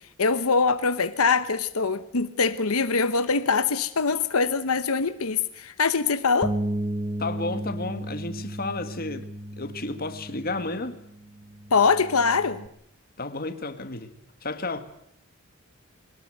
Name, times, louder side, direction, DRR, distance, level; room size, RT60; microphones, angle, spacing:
voice 1, 0.2-6.5 11.7-12.6, left 4 dB, 90° left, 1.0 m, -23 dB
Bass guitar, 6.4-12.7, right 1 dB, 20° right, 1.1 m, -34 dB
voice 2, 7.2-9.3 9.6-11.0 13.2-14.1 14.4-14.9, left 2 dB, 45° left, 2.0 m, -32 dB
22.5 x 19.0 x 9.3 m
head